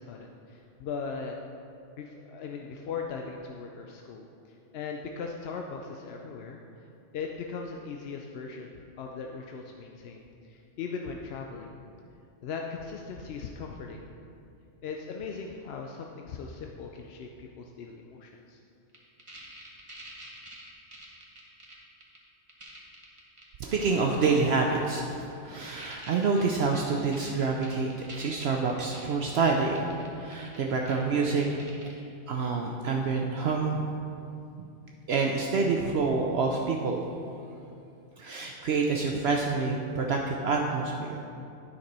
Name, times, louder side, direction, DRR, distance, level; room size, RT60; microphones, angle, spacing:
voice 1, 0.0-1.4 2.0-6.9 7.1-11.7 12.4-14.0 14.8-18.6, left 5 dB, 65° left, 1 dB, 0.7 m, -39 dB
sound 1, 18.9-21.7 22.0-22.2 22.5-23.4 23.8-24.6 25.1-25.2 25.6-31.0 31.4-31.9, right 1 dB, 25° right, 1.3 m, -47 dB
voice 2, 23.6-31.5 32.3-33.9 35.1-37.0 38.2-41.3, right 4 dB, 65° right, 0 dB, 0.8 m, -27 dB
9.3 x 6.0 x 4.2 m, 2.6 s
omnidirectional pair, 1.3 m